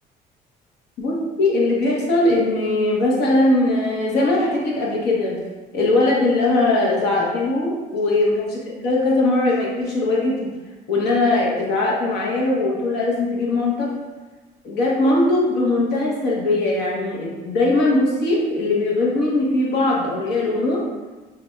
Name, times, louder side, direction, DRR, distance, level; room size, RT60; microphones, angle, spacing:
voice 1, 1.0-5.4 5.7-8.6 8.8-10.5 10.9-13.9 14.6-20.8, left 2 dB, 80° left, -4 dB, 1.2 m, -20 dB
6.5 x 2.6 x 2.3 m, 1.2 s
cardioid pair, 110°, 17 cm